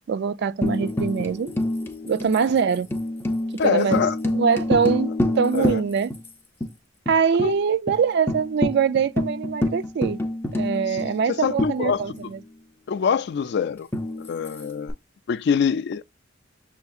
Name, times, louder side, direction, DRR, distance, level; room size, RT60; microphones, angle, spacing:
voice 1, 0.1-1.5 2.1-2.9 3.6-4.1 4.3-6.1 7.1-10.2 10.5-12.4, right 6 dB, 55° right, 0.3 m, -23 dB
Tambourine, 0.6-6.3 6.6-6.7 7.1-7.5 7.9-8.0 8.3-12.4 13.9-14.9, left 1 dB, 10° left, 0.6 m, -27 dB
voice 2, 3.6-4.2 5.5-5.8 7.4-7.5 10.9-11.0 11.3-12.0 12.9-13.9 14.2-14.9 15.3-16.0, left 6 dB, 60° left, 0.3 m, -24 dB
6.9 x 2.6 x 2.3 m
head